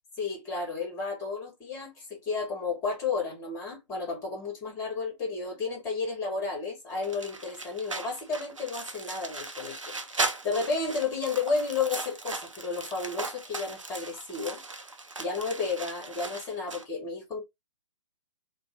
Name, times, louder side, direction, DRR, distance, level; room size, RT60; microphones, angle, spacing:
voice 1, 0.2-14.6 15.2-17.4, left 4 dB, 20° left, 1.6 m, -32 dB
sound 1, 7.0-16.8, right 3 dB, 80° right, 0.6 m, -37 dB
2.7 x 2.5 x 2.7 m
figure-of-eight pair, 125°, 16 cm